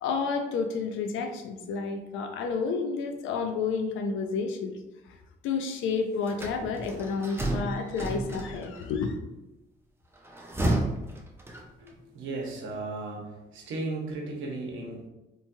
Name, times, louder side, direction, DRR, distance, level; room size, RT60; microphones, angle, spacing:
voice 1, 0.0-4.7 5.1-5.2 5.4-9.2, left 5 dB, 85° left, 5 dB, 0.4 m, -30 dB
sound 1, 6.3-8.8 10.2-12.0, right 1 dB, 10° right, 0.5 m, -31 dB
voice 2, 11.6-15.1, right 2 dB, 80° right, 0 dB, 0.8 m, -36 dB
3.0 x 2.8 x 2.2 m, 0.99 s
cardioid pair, 90°, 20 cm